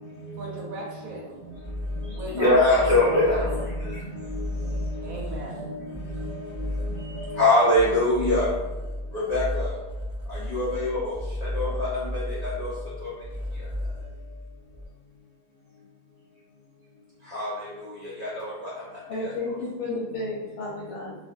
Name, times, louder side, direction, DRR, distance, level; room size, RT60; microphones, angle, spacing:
voice 1, 0.4-1.4 2.1-3.6 5.0-5.8, right 2 dB, 70° right, -2 dB, 1.1 m, -36 dB
sound 1, 1.4-14.9, left 1 dB, 20° left, 1.0 m, -34 dB
voice 2, 2.3-4.5 5.0-5.4 6.2-8.5 9.1-9.7 10.3-12.7 13.0-13.1 17.3-17.7 18.2-18.7 19.2-19.3, left 1 dB, 50° left, -10 dB, 0.5 m, -24 dB
voice 3, 19.1-21.2, left 2 dB, 80° left, -5 dB, 1.2 m, -32 dB
2.7 x 2.5 x 2.6 m, 1.2 s
omnidirectional pair, 1.7 m